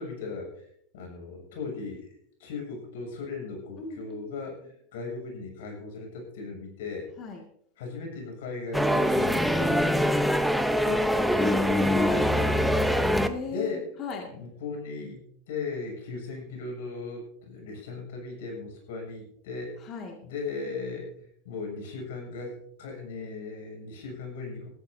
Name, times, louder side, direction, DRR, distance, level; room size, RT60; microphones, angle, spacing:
voice 1, 0.0-7.1 7.8-10.1 13.5-13.8 14.3-19.9 20.2-24.7, left 4 dB, 85° left, 2 dB, 7.3 m, -37 dB
voice 2, 3.8-4.4 7.2-7.4 10.9-11.0 11.3-12.3 13.1-14.3 19.8-20.2, left 4 dB, 35° left, 1 dB, 2.1 m, -34 dB
sound 1, 8.7-13.3, equal, ahead, 0.8 m, -24 dB
20.5 x 13.5 x 2.7 m, 0.68 s
supercardioid pair, 155°, 0 cm